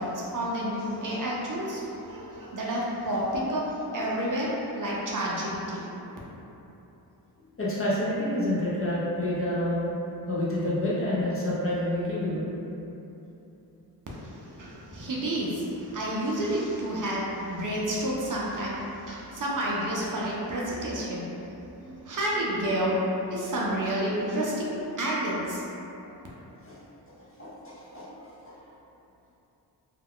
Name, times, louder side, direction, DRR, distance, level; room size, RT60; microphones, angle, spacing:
voice 1, 0.0-6.0 14.1-25.9, right 1 dB, 50° right, -5 dB, 0.4 m, -30 dB
voice 2, 7.6-9.9 10.3-12.5 26.0-26.1 26.7-26.8 27.2-28.1 28.5-28.6, left 1 dB, 30° left, -8 dB, 0.5 m, -28 dB
2.3 x 2.2 x 3.5 m, 3.0 s
wide cardioid pair, 165°, 42 cm